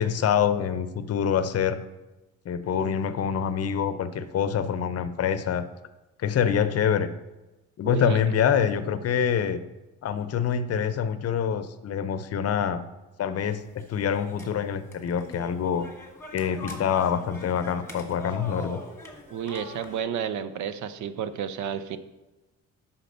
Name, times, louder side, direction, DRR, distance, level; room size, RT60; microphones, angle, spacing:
voice 1, 0.0-1.8 2.4-5.6 6.2-7.1 7.8-9.6 10.0-12.8 13.2-15.9 16.3-18.8, left 8 dB, 55° left, 12 dB, 0.6 m, -25 dB
voice 2, 7.8-8.2 19.3-22.0, right 8 dB, 75° right, 12 dB, 0.6 m, -31 dB
sound 1, 13.4-20.0, left 1 dB, 10° left, 1.3 m, -43 dB
5.8 x 5.0 x 6.6 m, 1.1 s
cardioid pair, 90°, 30 cm